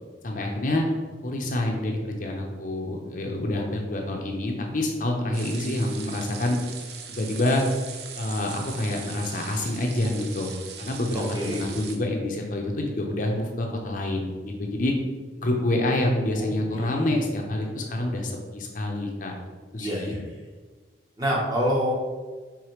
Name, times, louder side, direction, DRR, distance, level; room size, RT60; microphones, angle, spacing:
voice 1, 0.2-0.8 1.2-6.6 7.1-7.6 8.2-10.5 10.8-14.9 15.4-19.3 19.7-20.1, left 1 dB, 50° left, 1 dB, 0.6 m, -27 dB
sound 1, 5.3-12.0, right 6 dB, 65° right, 0.5 m, -40 dB
voice 2, 11.1-11.6 16.4-17.2 19.8-20.4 21.2-21.9, equal, 20° right, -4 dB, 1.0 m, -28 dB
4.9 x 3.5 x 3.0 m, 1.4 s
head